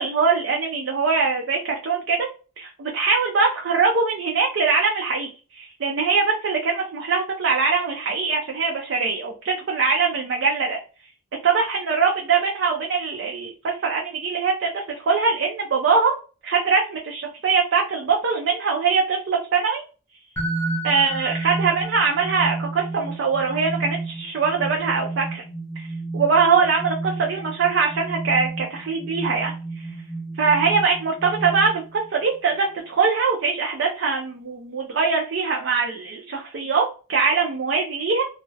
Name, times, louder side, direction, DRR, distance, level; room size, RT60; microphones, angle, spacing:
voice 1, 0.0-2.3 2.6-10.8 11.4-16.1 16.4-19.8 20.8-25.4 25.8-29.9 30.3-38.2, right 5 dB, 60° right, 1 dB, 0.4 m, -22 dB
sound 1, 20.4-32.1, right 3 dB, 15° left, 0.6 m, -31 dB
2.2 x 2.0 x 3.2 m, 0.35 s
head